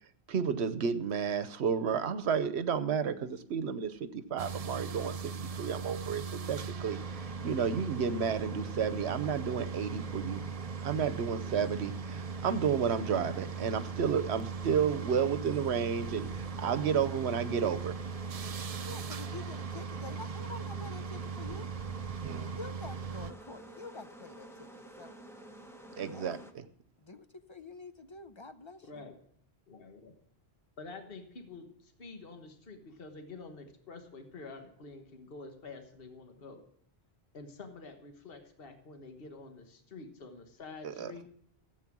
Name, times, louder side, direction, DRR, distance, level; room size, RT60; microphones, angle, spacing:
voice 1, 0.3-5.3 5.6-10.4 10.8-17.9 22.2-22.5 26.0-26.6 40.8-41.1, right 7 dB, 85° right, 12 dB, 1.1 m, -32 dB
sound 1, 4.4-23.3, right 5 dB, 45° right, 0.5 m, -39 dB
sound 2, 6.9-26.5, right 1 dB, 5° left, 1.0 m, -50 dB
voice 2, 18.9-21.7 22.5-25.2 26.1-26.4 27.0-29.0 41.0-41.3, left 3 dB, 35° left, 10 dB, 0.6 m, -47 dB
voice 3, 28.8-29.2 29.7-30.1 30.8-36.6 37.3-41.3, left 3 dB, 60° left, 5 dB, 1.5 m, -48 dB
14.5 x 8.2 x 6.1 m, 0.67 s
omnidirectional pair, 1.1 m